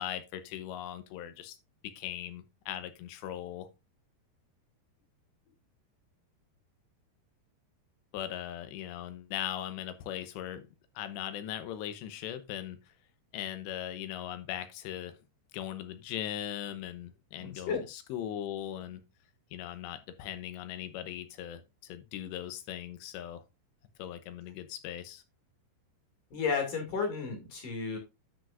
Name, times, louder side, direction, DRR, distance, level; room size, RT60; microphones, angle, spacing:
voice 1, 0.0-1.6 2.0-3.7 8.1-10.6 11.0-12.8 13.3-15.2 15.5-19.0 19.5-23.4 24.0-25.2, left 11 dB, 80° left, 11 dB, 3.0 m, -39 dB
voice 2, 17.4-17.8 26.3-28.0, left 5 dB, 50° left, 3 dB, 3.5 m, -32 dB
10.5 x 7.2 x 2.5 m, 0.24 s
omnidirectional pair, 5.1 m